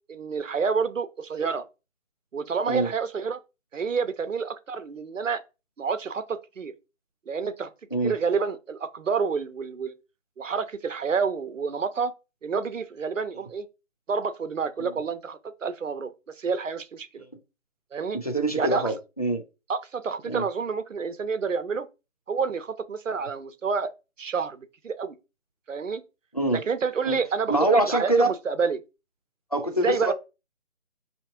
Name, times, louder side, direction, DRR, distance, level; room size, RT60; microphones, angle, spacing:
voice 1, 0.1-1.7 2.3-3.4 3.7-5.4 5.8-6.7 7.3-7.7 8.0-9.9 10.4-12.1 12.4-13.7 14.1-16.1 16.4-17.2 17.9-18.2 18.6-18.9 19.7-21.9 22.3-25.2 25.7-26.0 26.7-28.8 29.8-30.1, right 5 dB, 85° right, 0.8 m, -28 dB
voice 2, 18.1-19.4 20.2-20.5 26.3-26.6 27.0-27.2 27.5-28.3 29.5-30.1, right 1 dB, 30° left, 0.4 m, -24 dB
5.6 x 2.9 x 2.7 m
figure-of-eight pair, 170°, 37 cm